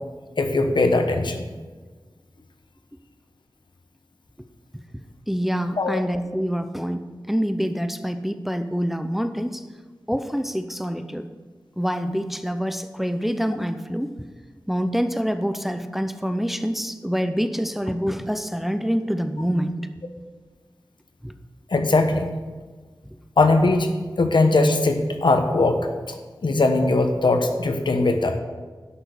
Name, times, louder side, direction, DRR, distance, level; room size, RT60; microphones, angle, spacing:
voice 1, 0.4-1.4 5.8-6.0 21.7-22.3 23.4-23.9 24.2-25.8 26.1-26.2 26.4-28.4, left 2 dB, 75° left, 6 dB, 1.1 m, -20 dB
voice 2, 5.3-9.6 10.1-11.3 11.8-14.1 14.7-19.9 21.2-21.3, equal, 5° right, 9 dB, 0.7 m, -26 dB
11.5 x 6.1 x 6.6 m, 1.4 s
wide cardioid pair, 50°, 8 cm